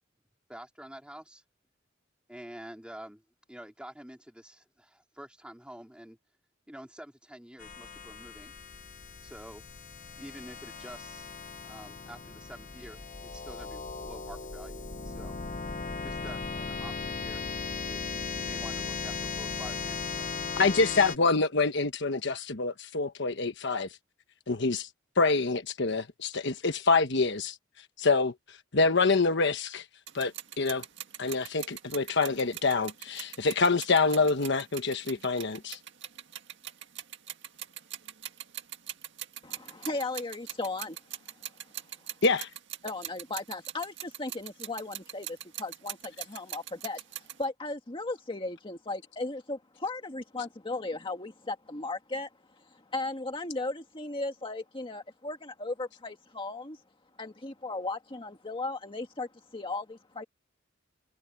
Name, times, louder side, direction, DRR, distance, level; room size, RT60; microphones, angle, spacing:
voice 1, 0.5-1.4 2.3-3.2 3.5-6.2 6.7-8.6 9.2-9.6 10.2-15.3 16.0-17.5 17.9-20.3, equal, 5° right, 3.9 m, -48 dB
sound 1, 7.6-21.2, left 4 dB, 45° left, 1.0 m, -37 dB
voice 2, 20.6-23.9 24.5-24.9 25.2-27.6 28.0-28.3 28.7-29.8 30.1-30.8 31.2-35.8 42.2-42.5, left 4 dB, 65° left, 1.2 m, -26 dB
sound 2, 30.1-47.5, right 12 dB, 65° right, 1.9 m, -43 dB
voice 3, 39.4-41.0 42.8-52.3 52.6-56.8 57.2-60.2, left 2 dB, 25° left, 1.8 m, -36 dB
head